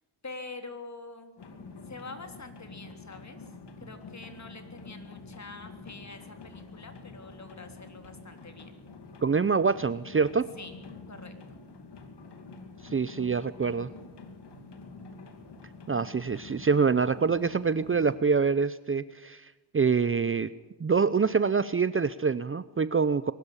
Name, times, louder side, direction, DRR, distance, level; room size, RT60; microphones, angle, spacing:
voice 1, 0.2-1.4 1.9-3.5 3.8-8.7 10.6-10.8 11.1-11.6, left 3 dB, 40° left, 6 dB, 3.5 m, -45 dB
sound 1, 1.4-18.2, left 3 dB, 65° left, 2.9 m, -47 dB
voice 2, 9.2-10.5 12.9-13.9 15.9-19.5 19.7-20.5 20.8-23.3, right 5 dB, 30° right, 16 dB, 0.7 m, -25 dB
22.5 x 13.0 x 9.9 m, 1.1 s
cardioid pair, 65°, 44 cm